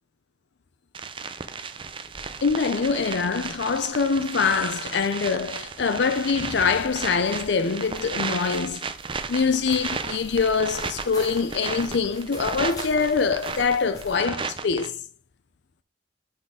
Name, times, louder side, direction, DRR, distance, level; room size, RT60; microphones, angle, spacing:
sound 1, 0.9-14.9, right 5 dB, 25° right, 0.5 m, -34 dB
sound 2, 2.0-14.2, left 1 dB, 20° left, 1.3 m, -46 dB
voice 1, 2.4-8.9 9.3-15.0, left 5 dB, 65° left, 0.5 m, -24 dB
sound 3, 4.0-5.0, right 4 dB, 50° right, 1.3 m, -46 dB
6.0 x 4.1 x 4.9 m
head